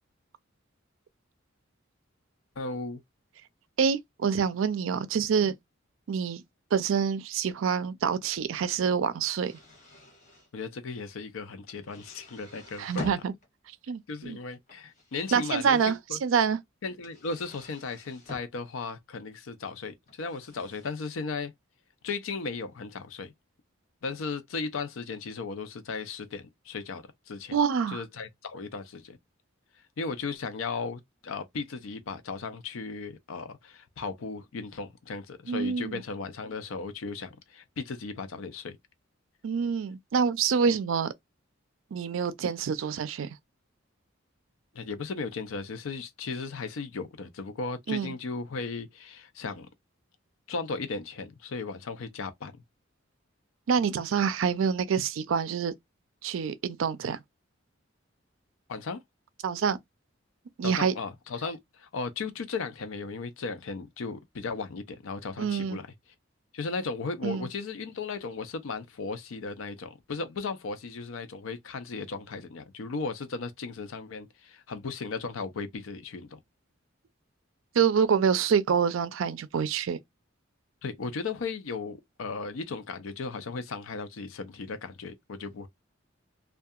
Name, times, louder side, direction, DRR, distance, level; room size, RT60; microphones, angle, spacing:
voice 1, 2.6-3.0 10.5-13.1 14.1-16.2 16.8-21.5 22.0-23.3 24.0-27.6 27.9-29.2 30.0-38.8 44.7-49.7 50.5-52.6 58.7-59.0 60.6-65.9 66.5-76.4 80.8-85.7, left 4 dB, 90° left, 0.5 m, -36 dB
voice 2, 3.8-5.5 6.1-6.4 6.7-9.5 12.8-13.3 13.9-14.4 15.3-16.6 27.5-28.0 35.5-36.0 39.4-41.1 41.9-43.4 47.9-48.1 53.7-55.7 56.2-57.2 59.4-59.8 60.6-60.9 65.4-65.8 67.2-67.5 77.7-80.0, right 6 dB, 80° right, 0.4 m, -26 dB
sound 1, 9.2-10.5 11.7-13.5 14.5-16.0 17.0-18.5 20.1-20.9, left 2 dB, 40° left, 1.1 m, -45 dB
2.7 x 2.3 x 2.3 m
head